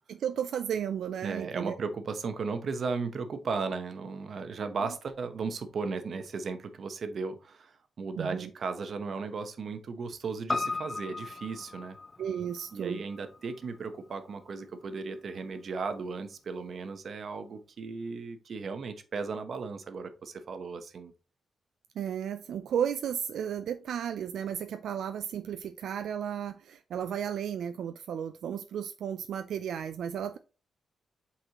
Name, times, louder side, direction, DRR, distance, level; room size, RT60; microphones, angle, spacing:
voice 1, 0.1-1.7 8.2-8.5 12.2-13.0 22.0-30.4, right 8 dB, 85° right, 9 dB, 0.4 m, -34 dB
voice 2, 1.2-12.0 12.7-21.1, right 4 dB, 55° right, 9 dB, 0.9 m, -36 dB
Piano, 10.5-15.0 15.3-15.4, left 3 dB, 25° left, 0.3 m, -38 dB
7.9 x 4.2 x 2.9 m, 0.34 s
cardioid pair, 115°, 0 cm